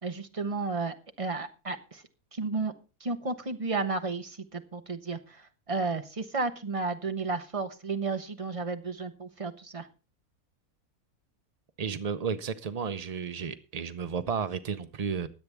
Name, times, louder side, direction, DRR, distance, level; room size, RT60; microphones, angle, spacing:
voice 1, 0.0-2.0 2.3-2.7 3.0-9.9, right 3 dB, 25° right, 1.0 m, -33 dB
voice 2, 11.8-15.3, right 6 dB, 85° right, 0.3 m, -33 dB
20.5 x 8.0 x 3.4 m
omnidirectional pair, 1.6 m